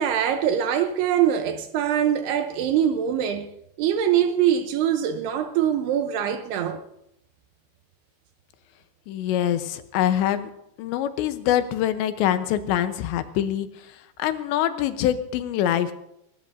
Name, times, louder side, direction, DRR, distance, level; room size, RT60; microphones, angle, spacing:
voice 1, 0.0-3.5 3.8-6.8, right 9 dB, 75° right, 2.6 m, -23 dB
voice 2, 9.1-10.5 10.8-13.7 14.2-15.9, left 11 dB, 85° left, 3.0 m, -24 dB
21.5 x 19.0 x 2.6 m
omnidirectional pair, 5.3 m